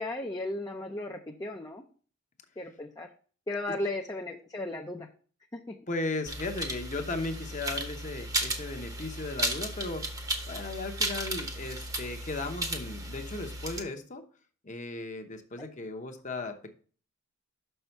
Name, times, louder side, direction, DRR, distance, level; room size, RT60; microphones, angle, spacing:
voice 1, 0.0-1.8 2.6-3.1 3.5-5.1 5.5-5.8 15.6-15.7, left 2 dB, 15° left, 2 dB, 0.5 m, -35 dB
voice 2, 5.9-10.1 10.5-14.2 14.6-16.7, left 2 dB, 35° left, 5 dB, 0.8 m, -36 dB
sound 1, 6.3-13.8, right 1 dB, 15° right, 0.8 m, -35 dB
6.1 x 5.6 x 4.5 m, 0.42 s
head